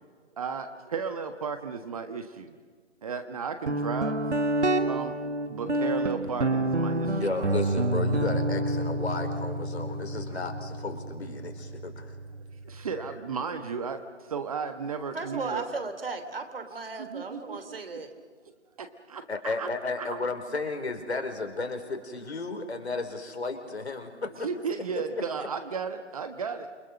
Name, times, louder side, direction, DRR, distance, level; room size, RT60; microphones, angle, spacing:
voice 1, 0.3-2.6 3.0-4.2 4.9-5.1 5.5-7.3 9.9-10.0 10.3-10.7 12.6-15.7 17.0-18.0 18.4-19.7 20.0-20.2 24.4-26.7, right 5 dB, 30° right, 8 dB, 1.4 m, -35 dB
Guitar, 3.7-13.1, right 1 dB, 70° right, 2.1 m, -29 dB
voice 2, 7.2-12.1 19.3-24.5, left 3 dB, 65° left, 6 dB, 4.1 m, -33 dB
voice 3, 15.1-18.1, right 3 dB, 50° right, 8 dB, 3.2 m, -36 dB
28.5 x 24.0 x 6.6 m, 1.5 s
figure-of-eight pair, 150°, 35 cm